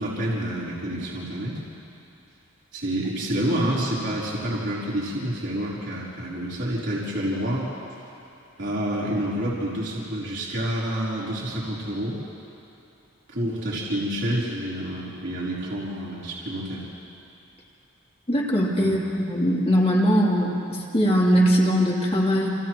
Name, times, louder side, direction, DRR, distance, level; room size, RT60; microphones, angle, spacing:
voice 1, 0.0-1.6 2.7-7.7 8.6-12.2 13.3-16.8 18.8-18.9, right 1 dB, 60° right, -7 dB, 3.9 m, -28 dB
voice 2, 18.3-19.0 19.3-22.5, equal, 30° left, -4 dB, 3.2 m, -21 dB
30.0 x 28.0 x 3.1 m, 2.8 s
head